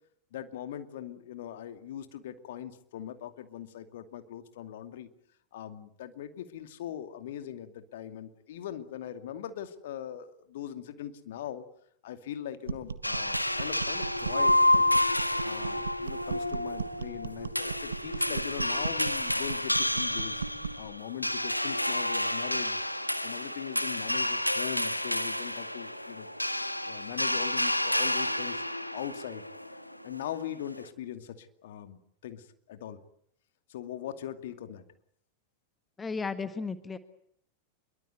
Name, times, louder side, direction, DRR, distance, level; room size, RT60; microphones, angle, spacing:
voice 1, 0.3-5.1 5.5-11.6 12.0-14.8 15.4-20.4 20.8-22.8 23.2-26.3 26.8-28.6 28.9-29.4 30.0-33.0 33.7-34.9, left 10 dB, 55° left, 8 dB, 2.5 m, -40 dB
sound 1, 12.7-20.9, right 5 dB, 70° right, 1.5 m, -38 dB
sound 2, 13.0-30.8, left 1 dB, 90° left, 1.5 m, -30 dB
voice 2, 36.0-37.0, left 4 dB, 15° left, 11 dB, 1.6 m, -34 dB
27.0 x 23.5 x 8.1 m, 0.67 s
figure-of-eight pair, 90°, 0 cm